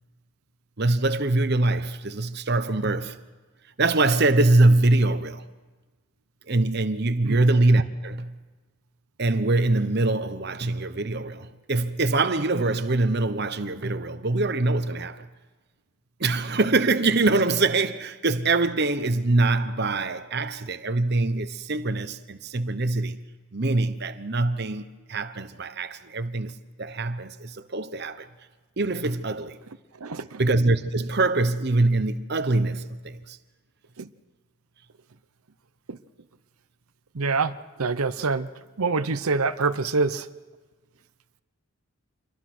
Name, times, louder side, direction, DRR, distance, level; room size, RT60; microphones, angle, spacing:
voice 1, 0.8-3.2 3.8-5.5 6.5-8.4 9.2-15.3 16.2-23.2 23.5-24.8 25.1-28.3 28.8-29.6 30.4-33.4, right 2 dB, 50° right, 1.0 m, -23 dB
voice 2, 29.9-30.4 34.0-34.1 35.9-36.0 37.1-38.5 38.8-40.3, right 4 dB, 85° right, 0.8 m, -26 dB
27.5 x 22.5 x 6.2 m
head